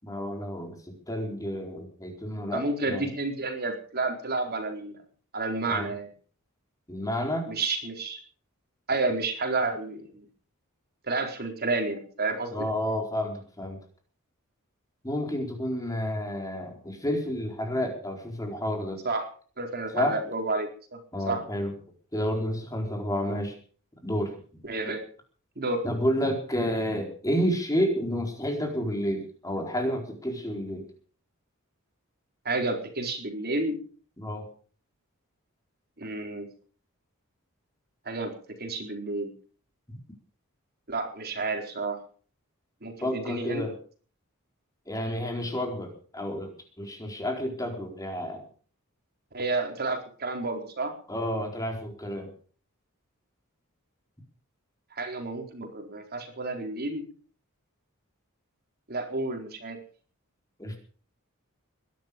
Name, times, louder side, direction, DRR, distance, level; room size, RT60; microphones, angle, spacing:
voice 1, 0.0-3.1 5.7-5.9 6.9-7.5 12.5-13.8 15.0-19.0 19.9-20.2 21.1-21.7 22.1-23.6 24.0-24.3 25.8-30.9 34.2-34.5 43.0-43.7 44.9-46.5 46.8-48.4 51.1-52.3 60.6-60.8, equal, 15° left, 3 dB, 4.3 m, -30 dB
voice 2, 2.5-5.0 5.3-6.1 7.5-8.2 8.9-10.2 11.0-12.7 19.0-19.2 19.6-21.0 21.3-21.4 24.6-25.0 25.6-25.8 32.4-33.8 36.0-36.5 38.1-38.3 38.6-39.3 40.9-42.0 42.8-43.6 49.3-50.9 54.9-57.0 58.9-59.8, right 3 dB, 50° right, 4 dB, 4.2 m, -30 dB
21.5 x 12.0 x 5.2 m, 0.43 s
head